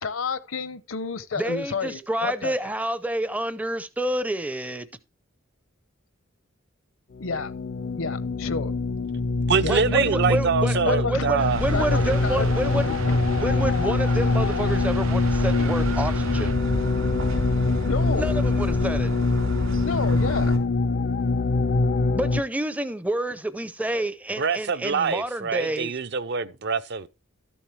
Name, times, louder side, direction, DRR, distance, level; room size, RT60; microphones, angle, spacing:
voice 1, 0.0-2.5 7.2-7.5 8.0-8.8 9.6-9.8 10.8-11.3 11.7-13.2 17.9-18.3 19.8-20.6, left 4 dB, 75° left, 0.8 m, -30 dB
voice 2, 1.4-4.9 9.7-12.9 13.4-16.6 18.2-19.1 22.1-26.0, right 1 dB, 5° right, 0.5 m, -28 dB
sound 1, 7.1-22.4, left 3 dB, 45° left, 0.4 m, -24 dB
voice 3, 9.5-11.6 24.4-27.1, right 5 dB, 55° right, 0.6 m, -25 dB
sound 2, 11.4-16.5, right 2 dB, 85° right, 0.9 m, -36 dB
sound 3, 11.5-20.6, equal, 70° right, 2.9 m, -31 dB
13.0 x 7.2 x 3.2 m
head